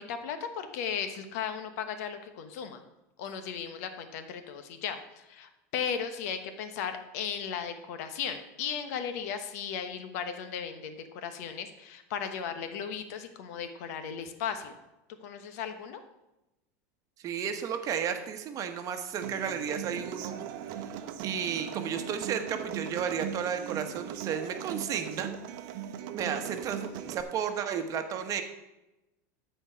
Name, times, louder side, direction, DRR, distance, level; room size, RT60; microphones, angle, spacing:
voice 1, 0.0-2.8 3.2-5.0 5.3-14.7 15.2-16.0, left 7 dB, 70° left, 8 dB, 1.1 m, -36 dB
voice 2, 17.2-20.3 21.2-25.3 26.1-28.4, right 7 dB, 40° right, 7 dB, 1.1 m, -33 dB
Human voice / Acoustic guitar, 19.2-27.2, right 9 dB, 60° right, 0.8 m, -39 dB
13.0 x 4.5 x 5.6 m, 0.97 s
supercardioid pair, 115°, 9 cm